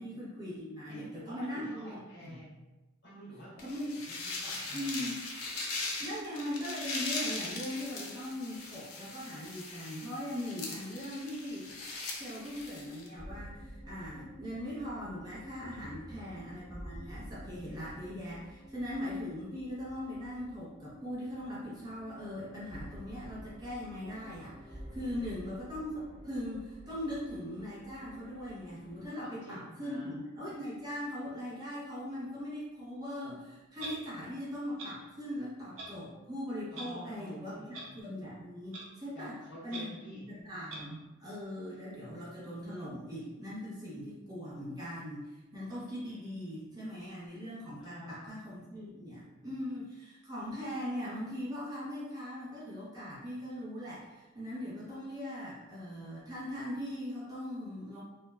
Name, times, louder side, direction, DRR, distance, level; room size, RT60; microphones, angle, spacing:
voice 1, 0.0-2.4 3.6-4.0 4.7-5.2 6.0-11.8 12.1-39.3 39.6-58.0, equal, 20° right, -8 dB, 0.6 m, -40 dB
voice 2, 0.9-2.6 3.0-3.6 4.1-5.1 15.9-16.3 25.0-25.3 29.2-30.2 36.7-38.0 39.1-40.3 45.7-45.8 47.8-48.3 49.4-49.7, equal, 55° left, -6 dB, 0.9 m, -50 dB
sound 1, 3.6-13.1, left 3 dB, 85° left, 0.5 m, -40 dB
sound 2, 13.2-29.1, equal, 35° left, 1.1 m, -50 dB
Clock, 33.8-33.9 34.8-34.9 35.8-35.9 36.7-36.9 37.7-37.8 38.7-38.8 39.7-39.8 40.7-40.8, right 2 dB, 80° right, 0.6 m, -41 dB
2.9 x 2.1 x 2.2 m, 1.1 s
head